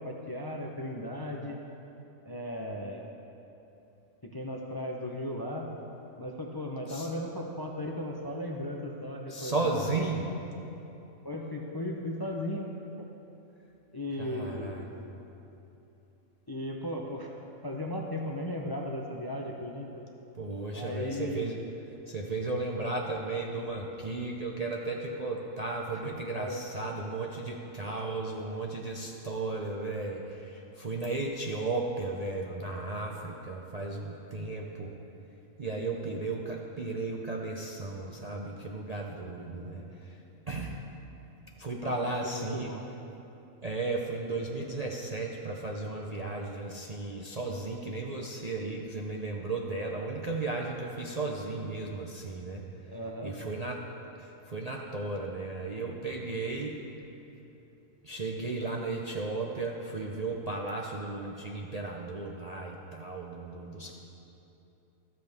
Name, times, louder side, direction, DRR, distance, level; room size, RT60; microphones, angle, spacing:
voice 1, 0.0-1.6 2.3-3.1 4.3-5.7 6.2-9.8 11.2-12.7 13.0-13.1 13.9-14.7 16.5-17.3 17.6-19.9 20.7-21.4 25.9-26.1 26.4-26.6 35.7-35.9 41.8-42.8 52.9-53.4, left 1 dB, 25° left, 0 dB, 0.6 m, -36 dB
voice 2, 9.3-10.3 14.2-14.9 20.4-21.6 22.1-34.9 35.6-40.2 40.5-40.8 41.6-42.7 43.6-52.6 53.2-53.8 54.2-56.8 58.0-63.9, right 3 dB, 40° right, -1 dB, 0.6 m, -35 dB
13.5 x 13.0 x 3.6 m, 2.9 s
omnidirectional pair, 1.5 m